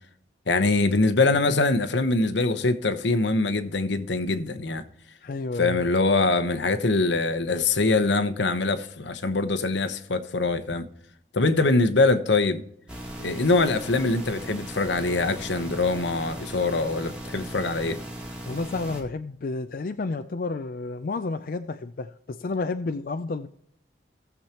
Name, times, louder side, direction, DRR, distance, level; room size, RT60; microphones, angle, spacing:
voice 1, 0.5-4.8 5.6-10.9 11.3-12.6 13.2-18.0, left 3 dB, 75° left, 1.0 m, -23 dB
voice 2, 5.2-5.8 18.5-23.5, left 3 dB, 50° left, 0.4 m, -31 dB
sound 1, 12.9-19.0, right 1 dB, 5° right, 1.7 m, -38 dB
17.5 x 7.2 x 2.9 m
head